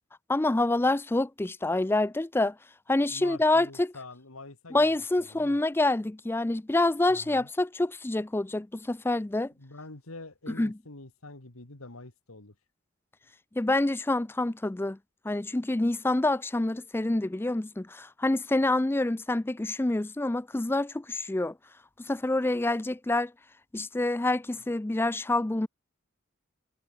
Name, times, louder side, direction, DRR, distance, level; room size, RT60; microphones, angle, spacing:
voice 1, 0.3-2.5 2.9-3.9 4.7-9.5 10.6-10.7 13.6-15.0 15.2-21.5 22.0-23.3 23.7-25.7, left 2 dB, 10° left, 0.4 m, -27 dB
voice 2, 3.1-5.6 7.1-7.5 9.6-12.5, left 2 dB, 85° left, 2.6 m, -46 dB
head